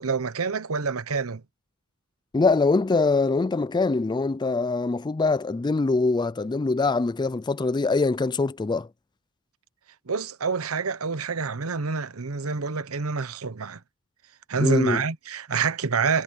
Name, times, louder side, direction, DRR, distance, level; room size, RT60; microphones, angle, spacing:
voice 1, 0.0-1.4 10.1-13.8 14.5-16.2, right 5 dB, 80° right, 0.9 m, -27 dB
voice 2, 2.3-8.9 14.6-15.0, left 3 dB, 20° left, 0.4 m, -23 dB
head